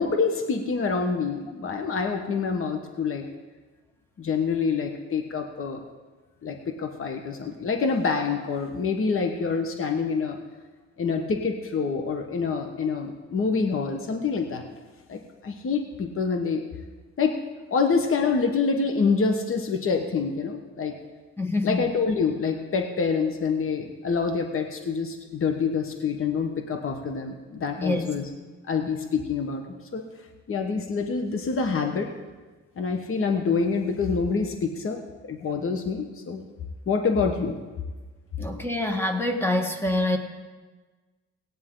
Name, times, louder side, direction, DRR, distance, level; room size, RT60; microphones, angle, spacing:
voice 1, 0.0-3.2 4.2-5.8 6.4-10.4 11.0-14.6 15.1-16.6 17.2-17.4 17.7-20.9 21.6-28.2 28.7-29.6 29.9-30.0 30.5-32.1 32.8-36.5 36.9-37.6, left 5 dB, 45° left, 4 dB, 1.3 m, -26 dB
voice 2, 21.4-21.9 27.8-28.0 38.4-40.2, left 2 dB, 10° left, 4 dB, 1.7 m, -25 dB
17.5 x 9.4 x 3.9 m, 1.3 s
cardioid pair, 90°, 30 cm